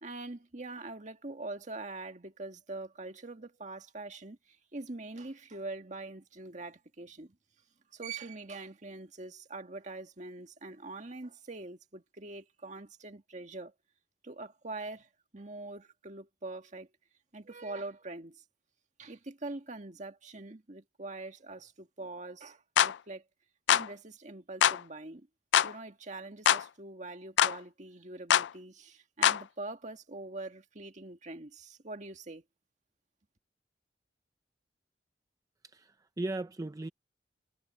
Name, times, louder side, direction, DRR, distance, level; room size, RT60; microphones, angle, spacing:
voice 1, 0.0-7.4 7.9-13.7 14.2-16.9 17.3-18.4 19.0-23.2 23.7-25.3 25.6-32.4, right 2 dB, 45° right, 1.7 m, -43 dB
sound 1, 22.8-22.9 23.7-23.9 24.6-24.8 25.5-25.7 26.5-26.6 27.4-27.6 28.3-28.5 29.2-29.4, left 10 dB, 90° left, 0.4 m, -23 dB
voice 2, 35.6-36.9, right 2 dB, 20° right, 0.5 m, -37 dB
head